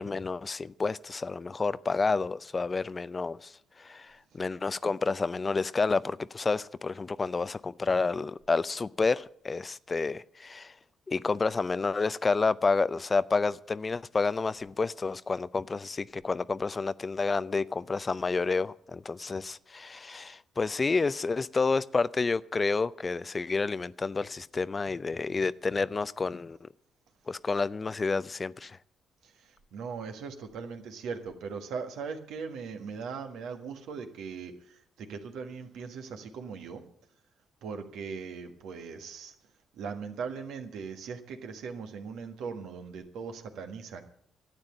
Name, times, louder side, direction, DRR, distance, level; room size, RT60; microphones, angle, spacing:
voice 1, 0.0-10.7 11.1-26.7 27.3-28.8, left 4 dB, 35° left, 0.5 m, -29 dB
voice 2, 29.2-36.8 37.6-39.3 39.7-44.0, right 5 dB, 70° right, 1.6 m, -39 dB
12.5 x 8.9 x 8.7 m
hypercardioid pair, 45°, 0 cm